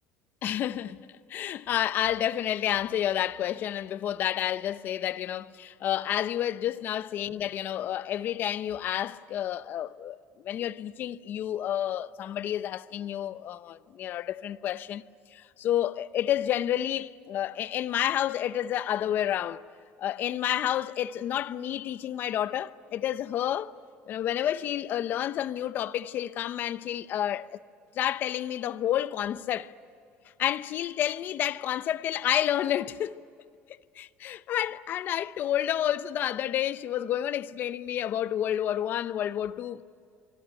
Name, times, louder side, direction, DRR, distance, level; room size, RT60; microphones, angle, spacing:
voice 1, 0.4-15.0 15.3-19.6 20.0-23.7 24.1-27.6 27.9-29.7 30.4-33.2 34.0-39.8, left 11 dB, 50° left, 0.8 m, -30 dB
25.5 x 24.5 x 9.0 m
cardioid pair, 125°, 4 cm